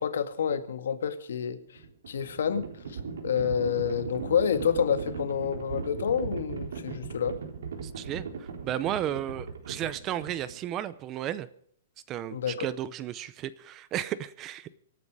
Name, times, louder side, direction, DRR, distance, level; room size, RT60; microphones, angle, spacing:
voice 1, 0.0-1.6 2.1-2.6 2.9-7.4 12.3-12.7, left 7 dB, 80° left, 10 dB, 1.9 m, -28 dB
Livestock farm animals working animals, 1.6-10.7, right 5 dB, 85° right, 3.9 m, -38 dB
voice 2, 7.8-11.5 12.1-14.7, right 11 dB, 20° right, 17 dB, 0.6 m, -34 dB
24.5 x 9.6 x 4.9 m, 0.63 s
hypercardioid pair, 175°, 0 cm